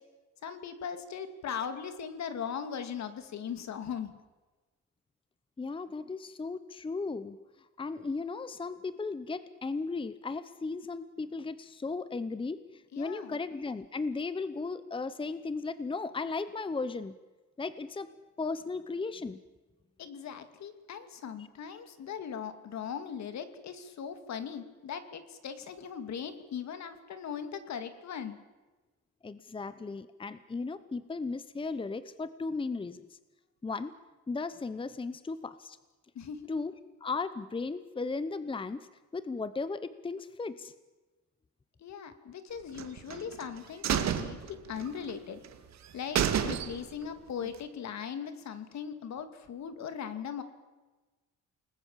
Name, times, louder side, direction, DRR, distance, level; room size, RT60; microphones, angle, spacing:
voice 1, 0.4-4.1 12.9-13.4 20.0-28.4 36.1-36.5 41.8-45.4 45.9-50.4, left 7 dB, 65° left, 10 dB, 2.6 m, -39 dB
voice 2, 5.6-7.4 7.8-17.1 17.6-18.1 18.4-19.4 29.2-33.0 33.6-33.9 34.3-35.8 36.5-40.7, left 4 dB, 15° left, 14 dB, 0.9 m, -36 dB
sound 1, 42.8-43.4 43.8-45.1 45.4-45.5 45.8-45.9 46.2-47.1 47.4-47.5, right 9 dB, 60° right, 2.2 m, -30 dB
29.0 x 20.0 x 7.5 m, 1.2 s
cardioid pair, 130°, 30 cm